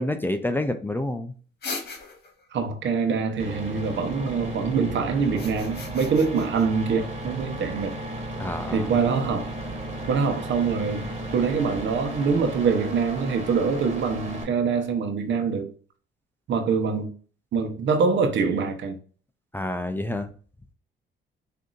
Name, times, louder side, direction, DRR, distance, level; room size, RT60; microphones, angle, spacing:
voice 1, 0.0-1.3 8.4-8.9 19.5-20.3, left 1 dB, 10° left, 0.5 m, -28 dB
sound 1, 1.6-2.5 5.2-6.7, left 4 dB, 55° left, 1.5 m, -37 dB
voice 2, 2.5-7.9 8.7-9.5 10.1-15.7 16.5-17.1 17.5-19.0, right 5 dB, 65° right, 1.0 m, -24 dB
sound 2, 3.4-14.4, right 1 dB, 30° right, 1.7 m, -34 dB
6.2 x 2.8 x 2.5 m
cardioid pair, 90°, 20 cm